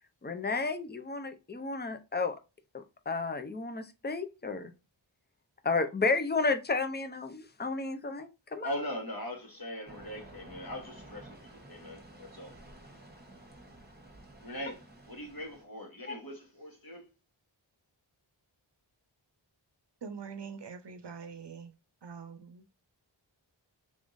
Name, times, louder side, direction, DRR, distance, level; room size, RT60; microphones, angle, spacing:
voice 1, 0.2-2.4 2.7-4.7 5.6-8.7 16.1-16.2, left 3 dB, 20° left, 0.6 m, -32 dB
voice 2, 8.6-12.5 14.4-17.1, equal, 50° left, 1.4 m, -41 dB
sound 1, 9.8-15.7, right 1 dB, 20° right, 1.1 m, -52 dB
voice 3, 20.0-21.7 22.0-22.7, right 6 dB, 60° right, 0.7 m, -44 dB
3.6 x 3.5 x 2.6 m
wide cardioid pair, 45°, 47 cm